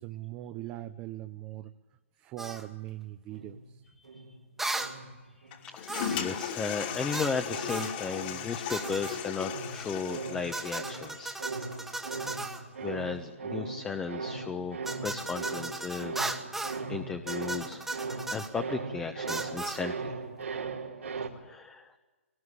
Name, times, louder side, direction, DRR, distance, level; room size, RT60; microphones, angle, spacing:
voice 1, 0.0-1.7 2.2-3.8, right 15 dB, 25° right, 8 dB, 0.9 m, -41 dB
sound 1, 2.4-2.6 4.6-5.0 5.9-6.3 7.1-7.4 7.7-8.0 8.7-9.2 10.5-12.6 14.9-16.8 17.3-18.5 19.3-19.8, right 2 dB, 5° right, 1.6 m, -36 dB
sound 2, 3.3-5.7 6.1-21.3, right 4 dB, 90° right, 3.8 m, -40 dB
Toilet flush, 5.5-12.4, left 9 dB, 45° left, 2.9 m, -38 dB
voice 2, 5.6-11.3 11.9-12.3 12.8-16.3 16.9-20.1 21.4-22.0, left 5 dB, 15° left, 6 dB, 1.2 m, -35 dB
22.0 x 19.5 x 9.9 m, 1.3 s
hypercardioid pair, 140°, 7 cm